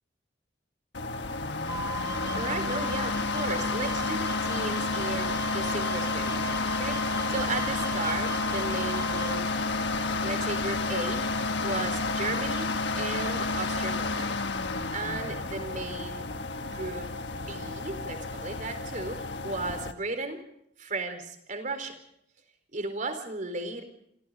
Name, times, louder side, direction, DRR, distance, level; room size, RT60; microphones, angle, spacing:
sound 1, 0.9-19.9, left 3 dB, 75° left, 1.4 m, -30 dB
sound 2, 1.7-9.4, right 2 dB, 20° right, 1.1 m, -38 dB
voice 1, 2.3-9.5 10.2-14.4 14.7-16.3 16.6-20.4 20.8-22.0 22.7-23.8, right 3 dB, 45° right, 7 dB, 4.3 m, -35 dB
28.0 x 26.0 x 4.0 m, 0.75 s
head